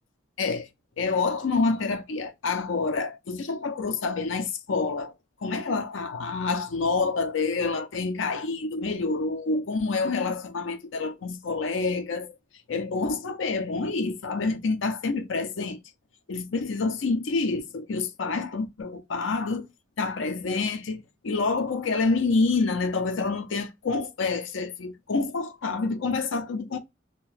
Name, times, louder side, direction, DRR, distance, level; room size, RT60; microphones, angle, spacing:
voice 1, 1.0-5.1 5.4-12.3 12.7-15.8 16.3-19.7 20.0-26.8, left 4 dB, 85° left, 0.5 m, -27 dB
2.7 x 2.2 x 3.1 m
head